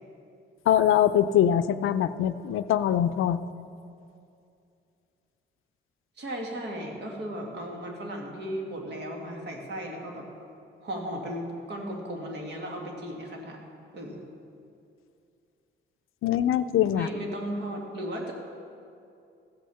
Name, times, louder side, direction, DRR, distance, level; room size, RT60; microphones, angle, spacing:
voice 1, 0.7-3.4 16.2-17.1, left 10 dB, 80° left, 12 dB, 0.5 m, -23 dB
voice 2, 6.2-10.3 10.8-13.6 13.9-14.2 16.9-18.3, equal, 55° right, 0 dB, 2.1 m, -35 dB
15.0 x 6.4 x 6.9 m, 2.5 s
wide cardioid pair, 150°, 21 cm